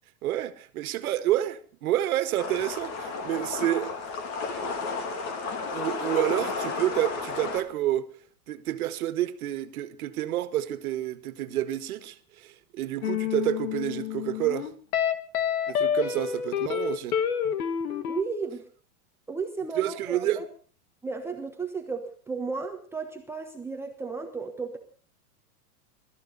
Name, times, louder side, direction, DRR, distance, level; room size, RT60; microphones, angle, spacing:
voice 1, 0.2-3.9 5.7-8.1 8.5-14.7 15.7-17.2 19.8-20.4, right 13 dB, 70° right, 1.8 m, -29 dB
sound 1, 2.4-7.6, left 4 dB, 35° left, 2.7 m, -32 dB
sound 2, 13.0-18.2, left 8 dB, 75° left, 1.9 m, -28 dB
voice 2, 18.0-18.7 19.3-20.4 21.0-24.8, right 4 dB, 5° right, 1.1 m, -34 dB
22.5 x 13.5 x 4.1 m
supercardioid pair, 145°, 45 cm